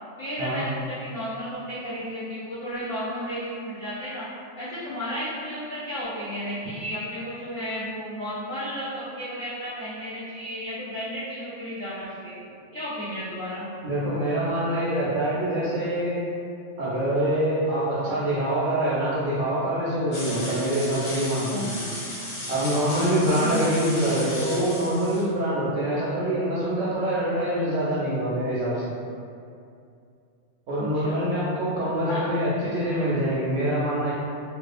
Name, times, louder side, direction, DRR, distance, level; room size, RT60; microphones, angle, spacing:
voice 1, 0.2-4.2 4.5-12.4 12.7-13.7 23.4-23.8 30.8-31.2 32.1-32.3, equal, 30° left, -15 dB, 0.4 m, -33 dB
voice 2, 13.8-16.2 16.8-21.8 22.5-28.8 30.7-34.1, right 1 dB, 85° right, -8 dB, 1.0 m, -25 dB
sound 1, 20.1-25.2, left 1 dB, 70° left, 0.9 m, -35 dB
2.4 x 2.3 x 2.4 m, 2.4 s
omnidirectional pair, 1.3 m